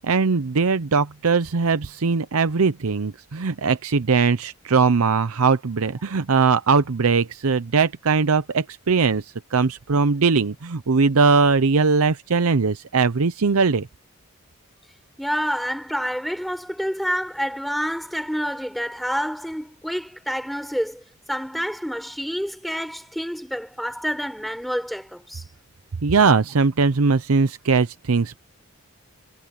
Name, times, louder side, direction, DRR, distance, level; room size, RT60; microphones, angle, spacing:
voice 1, 0.0-13.9 26.0-28.4, right 4 dB, 85° right, 0.7 m, -20 dB
voice 2, 15.2-21.0 21.3-25.4, equal, ahead, 5.7 m, -28 dB
head